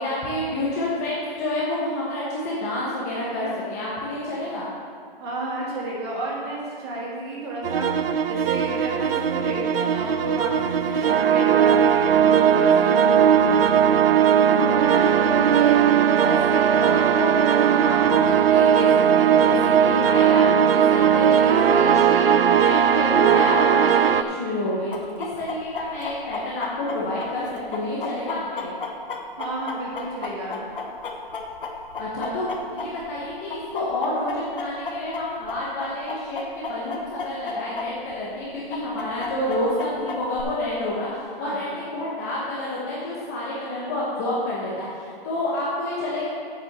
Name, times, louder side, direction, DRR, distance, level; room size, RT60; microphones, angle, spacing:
voice 1, 0.0-4.7 14.7-15.7 16.2-24.9 25.2-28.7 32.0-46.3, left 1 dB, 15° left, -6 dB, 1.0 m, -29 dB
voice 2, 5.2-13.8 28.3-28.4 29.4-30.6 41.4-41.6, right 2 dB, 25° right, -4 dB, 2.2 m, -31 dB
sound 1, 7.6-24.2, right 8 dB, 75° right, 0.6 m, -18 dB
Chicken rooster, 24.9-33.2 33.5-37.9 38.1-38.2 38.7-40.4, left 4 dB, 60° left, 1.4 m, -32 dB
7.8 x 7.0 x 6.6 m, 2.3 s
hypercardioid pair, 165°, 29 cm